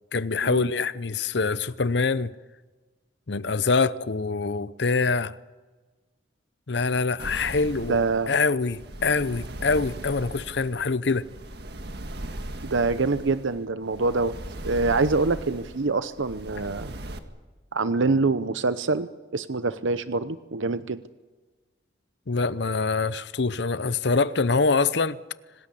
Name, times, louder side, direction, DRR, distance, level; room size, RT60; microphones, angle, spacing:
voice 1, 0.1-2.3 3.3-5.4 6.7-8.0 8.3-11.2 22.3-25.2, left 4 dB, 60° left, 0.8 m, -24 dB
sound 1, 7.2-17.2, right 1 dB, 60° right, 1.8 m, -38 dB
voice 2, 7.9-8.3 12.6-14.4 14.6-16.9 17.7-21.0, right 3 dB, 85° right, 0.8 m, -25 dB
26.0 x 19.0 x 8.4 m
head